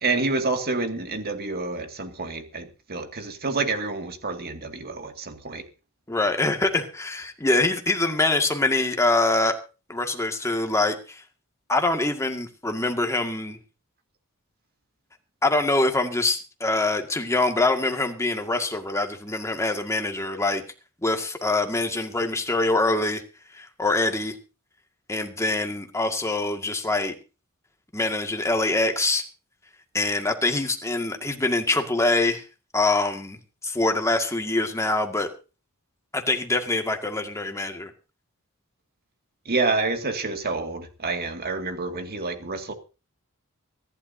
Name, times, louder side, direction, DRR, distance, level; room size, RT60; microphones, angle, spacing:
voice 1, 0.0-5.6 39.5-42.7, right 3 dB, 45° right, 6 dB, 2.2 m, -28 dB
voice 2, 6.1-9.6 9.9-11.2 11.7-13.6 15.4-20.6 21.0-23.2 23.5-24.3 25.1-27.1 27.9-29.2 29.9-32.4 32.7-33.4 33.6-35.3 36.1-37.9, left 2 dB, 15° left, 4 dB, 2.0 m, -24 dB
24.5 x 11.5 x 2.8 m, 0.32 s
head